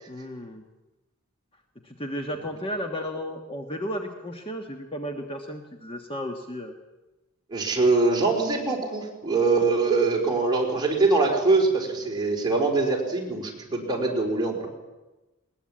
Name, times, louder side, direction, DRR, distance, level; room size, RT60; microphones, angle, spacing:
voice 1, 0.1-0.6 1.8-6.7, equal, 25° left, 4 dB, 1.4 m, -34 dB
voice 2, 7.5-14.7, right 3 dB, 20° right, 0 dB, 4.2 m, -23 dB
20.5 x 19.5 x 8.7 m, 1.1 s
head